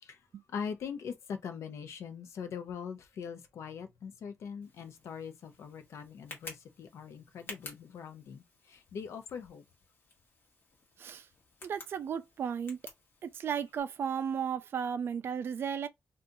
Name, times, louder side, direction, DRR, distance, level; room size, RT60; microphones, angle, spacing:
voice 1, 0.5-9.6, left 6 dB, 70° left, 0.6 m, -42 dB
Tick, 4.6-13.8, left 3 dB, 45° left, 1.3 m, -53 dB
voice 2, 11.6-12.8 13.2-15.9, right 7 dB, 50° right, 0.4 m, -34 dB
2.7 x 2.4 x 3.7 m
wide cardioid pair, 170°, 5 cm